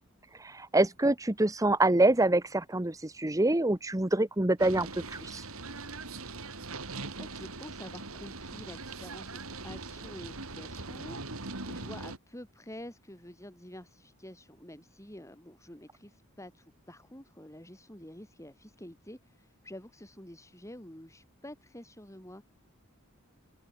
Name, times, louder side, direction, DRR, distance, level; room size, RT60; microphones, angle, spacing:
voice 1, 0.3-5.5, right 2 dB, 15° right, 1.0 m, -26 dB
sound 1, 4.6-12.2, right 3 dB, 80° right, 3.8 m, -41 dB
voice 2, 6.5-22.4, left 1 dB, 15° left, 6.4 m, -48 dB
open air
head